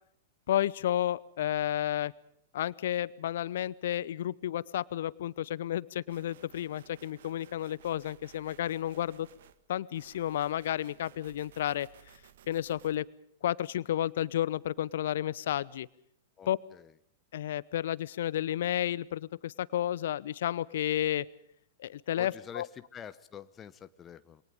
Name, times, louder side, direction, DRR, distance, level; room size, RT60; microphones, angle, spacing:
voice 1, 0.5-2.1 2.5-9.3 9.7-11.9 12.5-13.1 13.4-15.9 16.5-16.6 17.3-21.3 21.8-22.7, left 12 dB, 60° left, 21 dB, 0.8 m, -31 dB
sound 1, 6.1-9.6 9.9-12.9, right 9 dB, 60° right, 1.7 m, -58 dB
voice 2, 16.4-16.9 22.2-24.4, left 8 dB, 25° left, 12 dB, 1.1 m, -47 dB
28.0 x 23.5 x 5.3 m, 0.68 s
figure-of-eight pair, 105°, 0 cm